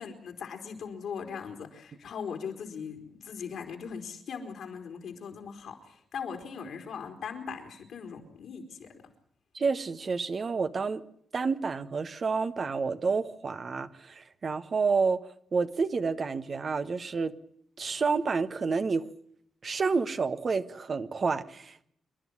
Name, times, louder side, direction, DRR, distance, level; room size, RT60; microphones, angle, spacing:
voice 1, 0.0-8.9, left 6 dB, 75° left, 4 dB, 3.9 m, -39 dB
voice 2, 9.5-11.0 11.3-15.2 15.5-17.3 17.8-19.1 19.6-21.8, right 4 dB, 50° right, 10 dB, 1.4 m, -29 dB
27.0 x 11.5 x 9.8 m, 0.68 s
cardioid pair, 65°, 0 cm